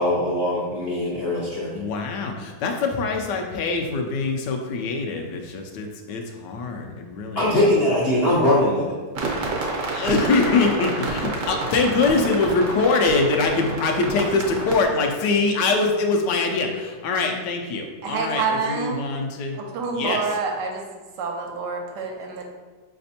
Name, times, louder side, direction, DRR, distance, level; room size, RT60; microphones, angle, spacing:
voice 1, 0.0-1.8 7.4-8.9, left 1 dB, 60° left, -7 dB, 0.6 m, -21 dB
voice 2, 1.7-7.6 9.9-19.6 19.9-20.2, left 3 dB, 80° left, 3 dB, 1.2 m, -23 dB
sound 1, 9.1-14.8, right 3 dB, 60° right, 1.0 m, -29 dB
voice 3, 18.0-19.0 19.6-20.8 21.2-22.4, right 4 dB, 80° right, 2 dB, 1.2 m, -27 dB
5.0 x 3.3 x 2.7 m, 1.4 s
omnidirectional pair, 1.9 m